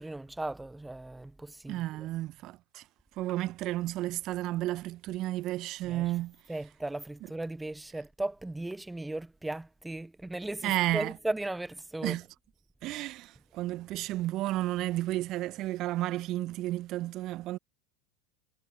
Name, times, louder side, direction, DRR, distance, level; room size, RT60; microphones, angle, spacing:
voice 1, 0.0-2.1 5.9-6.0 6.5-12.2, right 2 dB, 5° right, 0.7 m, -37 dB
voice 2, 1.7-2.8 3.2-6.4 10.6-11.1 12.0-12.3 12.8-17.6, right 16 dB, 45° right, 1.4 m, -32 dB
hypercardioid pair, 85°, 0 cm